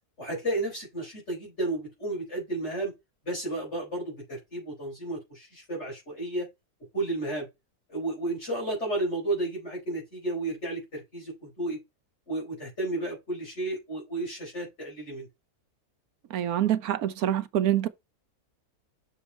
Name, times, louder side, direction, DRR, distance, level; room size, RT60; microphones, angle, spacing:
voice 1, 0.2-2.9 3.3-6.5 6.9-7.5 7.9-11.8 12.3-15.3, right 2 dB, 45° left, 5.3 m, -32 dB
voice 2, 16.3-17.9, right 11 dB, 75° right, 1.2 m, -26 dB
7.1 x 6.1 x 4.3 m
omnidirectional pair, 1.6 m